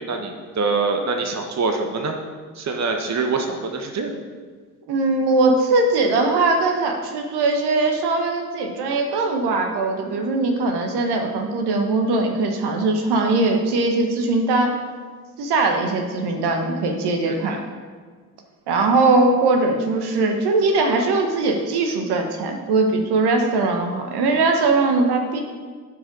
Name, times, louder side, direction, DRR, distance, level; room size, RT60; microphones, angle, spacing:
voice 1, 0.1-2.1 2.6-4.1 17.4-17.6, right 4 dB, 35° right, 4 dB, 1.2 m, -24 dB
voice 2, 4.9-14.8 15.4-17.6 18.7-25.4, right 3 dB, 60° right, 3 dB, 1.3 m, -20 dB
11.5 x 4.9 x 5.3 m, 1.5 s
hypercardioid pair, 50°, 44 cm